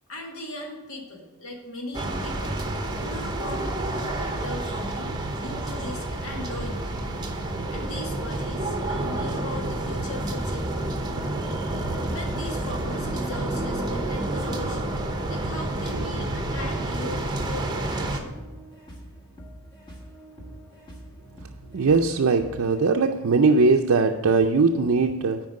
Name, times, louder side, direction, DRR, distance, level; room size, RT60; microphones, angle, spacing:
voice 1, 0.1-2.6 2.9-7.0 7.7-11.0 12.1-14.9 15.3-18.4, left 2 dB, 75° left, 0 dB, 1.9 m, -39 dB
sound 1, 1.9-18.2, right 1 dB, 20° right, 0.8 m, -29 dB
sound 2, 16.4-22.8, right 1 dB, 20° left, 1.3 m, -45 dB
voice 2, 21.7-25.4, right 4 dB, 65° right, 2 dB, 0.5 m, -20 dB
9.5 x 4.6 x 6.3 m, 1.2 s
head